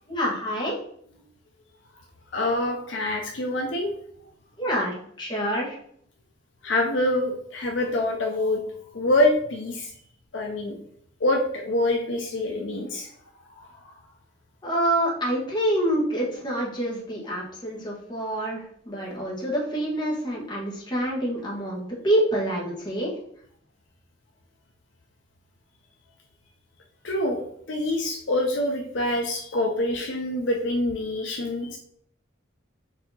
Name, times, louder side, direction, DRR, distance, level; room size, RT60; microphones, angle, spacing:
voice 1, 0.1-0.8 4.6-5.8 14.6-23.1, right 1 dB, 20° left, -4 dB, 1.2 m, -27 dB
voice 2, 2.3-3.9 6.6-8.6 8.9-9.9 10.3-10.8 11.2-13.1 13.6-13.7 27.0-31.8, left 1 dB, 60° left, 2 dB, 0.6 m, -25 dB
4.6 x 2.8 x 4.0 m, 0.67 s
head